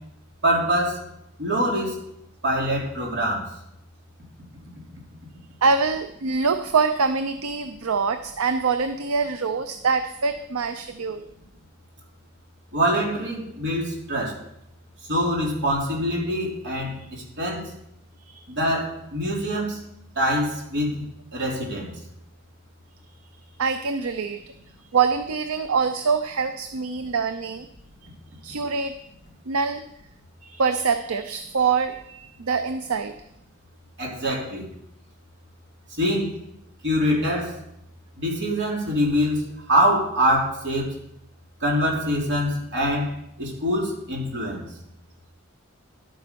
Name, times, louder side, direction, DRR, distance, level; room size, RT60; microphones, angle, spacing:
voice 1, 0.4-1.0 1.4-1.9 2.4-3.5 12.7-14.3 15.1-17.6 18.5-19.8 20.2-20.9 21.3-21.9 34.0-34.7 36.0-36.3 36.8-37.5 38.2-39.4 39.7-40.9 41.6-43.1 43.4-44.7, equal, 55° right, -2 dB, 3.4 m, -24 dB
voice 2, 5.6-11.3 18.2-18.4 23.6-24.4 24.9-27.6 28.4-28.9 29.5-29.8 30.4-33.1, right 5 dB, 80° right, 9 dB, 0.6 m, -24 dB
11.5 x 9.0 x 5.3 m, 0.79 s
head